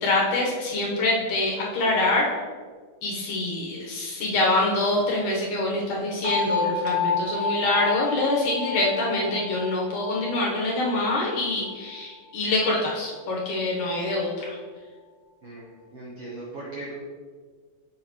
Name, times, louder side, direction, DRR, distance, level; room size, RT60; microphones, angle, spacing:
voice 1, 0.0-2.3 3.0-14.6, left 2 dB, 65° left, -3 dB, 2.3 m, -25 dB
sound 1, 6.2-12.1, left 4 dB, 40° right, 2.4 m, -30 dB
voice 2, 15.9-16.9, right 2 dB, 70° right, -5 dB, 1.4 m, -38 dB
7.6 x 7.1 x 3.0 m, 1.5 s
omnidirectional pair, 4.4 m